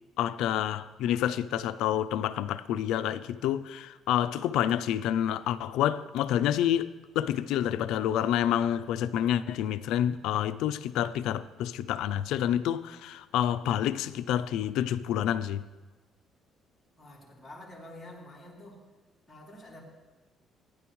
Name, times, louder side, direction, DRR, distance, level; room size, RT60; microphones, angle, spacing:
voice 1, 0.2-15.6, left 11 dB, 85° left, 0.4 m, -28 dB
voice 2, 17.0-18.8 19.3-19.8, left 1 dB, 10° left, 2.8 m, -48 dB
15.5 x 10.0 x 3.1 m
cardioid pair, 120°, 0 cm